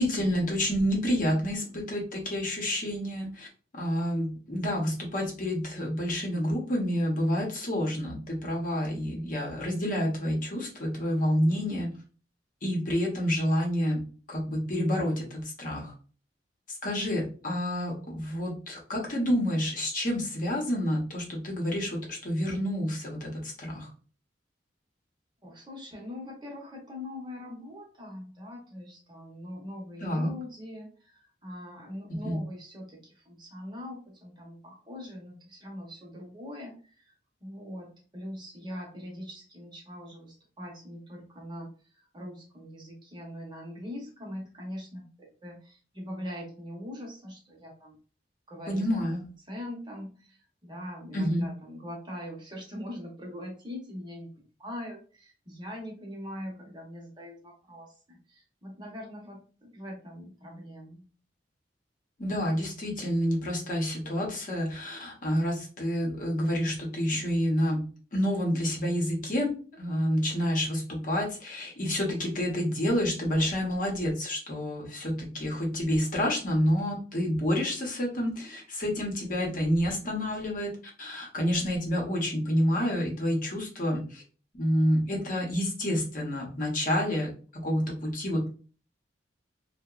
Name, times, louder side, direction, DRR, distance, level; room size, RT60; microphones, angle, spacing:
voice 1, 0.0-3.5 3.7-11.9 12.6-14.0 14.3-15.9 16.8-23.9 30.0-30.3 32.2-32.4 48.7-49.2 51.1-51.4 62.2-67.8 68.1-69.5 69.8-80.7 81.0-84.2 84.5-88.5, equal, 50° left, -1 dB, 0.8 m, -28 dB
voice 2, 25.4-37.1 37.4-48.0 48.5-48.9 49.5-54.3 54.6-61.0, left 1 dB, 25° right, -1 dB, 0.8 m, -42 dB
2.8 x 2.1 x 2.3 m, 0.38 s
head